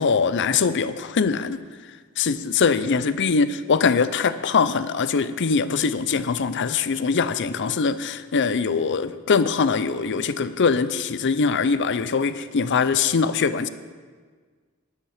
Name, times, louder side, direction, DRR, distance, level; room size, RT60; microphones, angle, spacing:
voice 1, 0.0-1.6 2.2-13.7, left 5 dB, 55° left, 13 dB, 0.5 m, -22 dB
12.5 x 11.5 x 4.9 m, 1.5 s
head